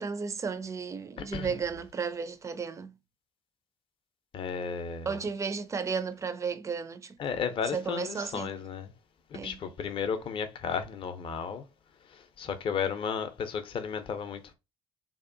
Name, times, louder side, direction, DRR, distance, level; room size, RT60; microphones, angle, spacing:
voice 1, 0.0-3.0 5.1-8.5 9.3-9.6, right 5 dB, 20° right, 0.4 m, -34 dB
voice 2, 4.3-5.2 7.2-8.9 9.3-11.6 12.1-14.5, left 6 dB, 40° left, 0.5 m, -34 dB
2.6 x 2.1 x 2.5 m
hypercardioid pair, 60°, 14 cm